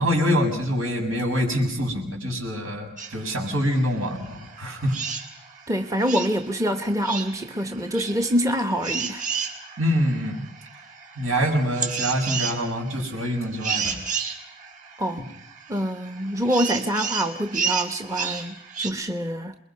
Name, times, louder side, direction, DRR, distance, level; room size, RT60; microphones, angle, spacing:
voice 1, 0.0-5.0 9.8-10.5 11.2-14.0, equal, 80° right, 6.8 m, -25 dB
sound 1, 3.0-18.9, right 6 dB, 40° right, 3.3 m, -33 dB
voice 2, 5.7-9.2 15.0-15.2 15.7-19.6, equal, 15° right, 1.0 m, -25 dB
28.5 x 21.5 x 5.7 m
head